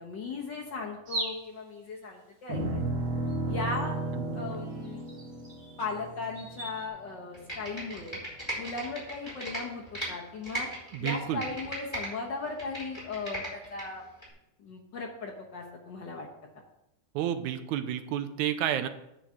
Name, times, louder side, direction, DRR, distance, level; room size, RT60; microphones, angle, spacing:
voice 1, 0.0-2.8 3.5-4.0 4.3-5.0 5.8-8.2 8.6-10.7 11.0-14.0 14.6-16.3, left 3 dB, 60° left, 0 dB, 1.2 m, -37 dB
sound 1, 1.1-1.6 3.3-3.4 3.7-3.9 4.8-6.9, right 1 dB, 40° right, 0.8 m, -39 dB
sound 2, 2.5-6.9, right 2 dB, 60° right, 2.5 m, -34 dB
Computer keyboard, 7.3-10.1 10.4-12.1 12.4-13.8 14.2-14.3, right 1 dB, 10° left, 4.1 m, -37 dB
voice 2, 10.9-11.4 17.1-18.9, right 10 dB, 80° right, 10 dB, 2.0 m, -31 dB
9.3 x 5.1 x 7.2 m, 0.84 s
omnidirectional pair, 3.5 m